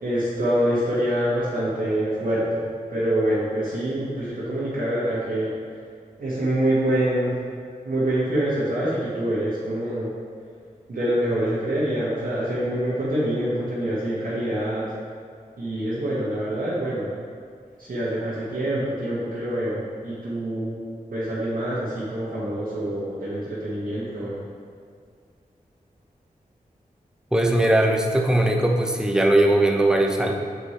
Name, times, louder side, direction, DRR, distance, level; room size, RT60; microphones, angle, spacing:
voice 1, 0.0-5.5 6.2-7.3 7.8-10.1 10.9-14.9 15.6-17.1 17.8-20.8 21.1-24.4, right 1 dB, 70° right, -10 dB, 1.5 m, -25 dB
voice 2, 27.3-30.3, right 1 dB, 5° right, 1 dB, 0.8 m, -19 dB
6.6 x 5.0 x 4.3 m, 2.2 s
cardioid pair, 55°, 15 cm